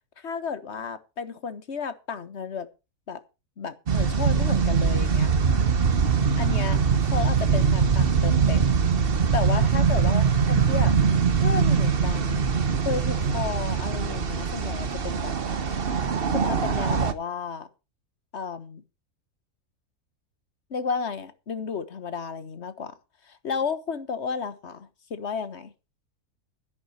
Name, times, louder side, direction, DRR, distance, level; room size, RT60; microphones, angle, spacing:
voice 1, 0.2-2.7 3.1-3.2 3.6-5.3 6.3-8.8 9.3-10.9 11.3-12.5 12.8-15.3 16.3-17.7 18.3-18.8 20.7-22.9 23.3-25.7, left 5 dB, 50° left, 12 dB, 1.5 m, -33 dB
sound 1, 3.9-17.1, right 6 dB, 45° right, 1.1 m, -22 dB
13.5 x 10.5 x 4.4 m, 0.29 s
omnidirectional pair, 1.6 m